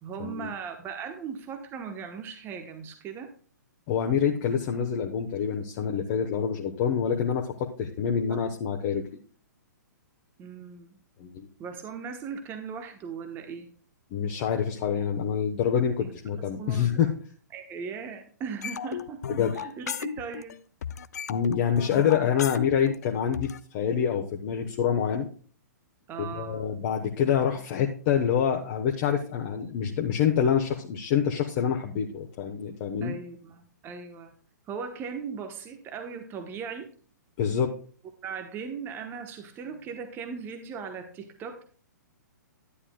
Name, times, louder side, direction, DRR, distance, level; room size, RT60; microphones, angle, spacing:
voice 1, 0.0-3.3 8.3-8.5 10.4-11.0 11.6-13.7 16.0-16.1 16.6-17.2 17.5-20.6 26.1-26.7 33.0-34.3 34.7-36.9 38.2-41.6, right 6 dB, 20° right, 6 dB, 1.1 m, -38 dB
voice 2, 3.9-9.0 11.2-11.5 14.1-17.1 19.4-19.6 21.3-25.3 26.2-33.1 37.4-37.7, left 8 dB, 35° left, 2 dB, 1.1 m, -26 dB
sound 1, 18.6-20.6 20.8-23.6, left 8 dB, 60° left, 0.5 m, -35 dB
11.5 x 9.8 x 2.3 m, 0.43 s
figure-of-eight pair, 115°, 10 cm